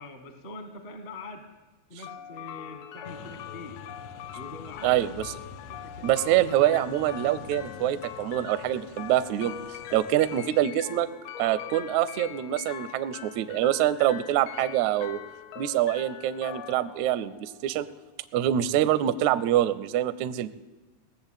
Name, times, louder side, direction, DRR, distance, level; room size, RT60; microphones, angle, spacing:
voice 1, 0.0-1.5 1.9-3.8 4.3-5.1 5.7-6.2, left 2 dB, 45° left, 7 dB, 0.7 m, -43 dB
sound 1, 2.0-18.0, left 10 dB, 70° left, 1.6 m, -42 dB
sound 2, 3.1-10.5, left 7 dB, 90° left, 2.5 m, -47 dB
voice 2, 4.8-5.3 6.0-9.5 9.9-11.1 11.4-15.2 15.6-17.9 18.3-20.5, right 12 dB, 80° right, 15 dB, 1.6 m, -25 dB
17.5 x 6.9 x 8.9 m, 1.2 s
omnidirectional pair, 3.8 m